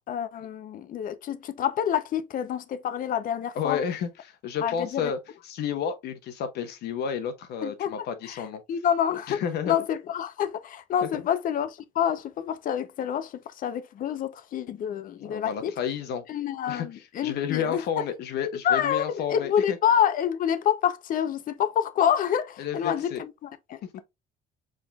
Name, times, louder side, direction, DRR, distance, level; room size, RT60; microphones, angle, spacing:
voice 1, 0.0-3.8 4.6-5.1 7.6-8.0 8.2-8.4 8.7-9.4 9.7-15.7 16.3-18.0 18.6-24.0, left 9 dB, 55° left, 0.7 m, -27 dB
voice 2, 3.5-5.2 5.4-8.6 9.3-9.8 11.0-11.1 15.2-16.2 16.7-19.8 22.6-23.2 23.9-24.0, left 7 dB, 75° left, 1.1 m, -31 dB
5.1 x 3.7 x 2.3 m
cardioid pair, 110°, 17 cm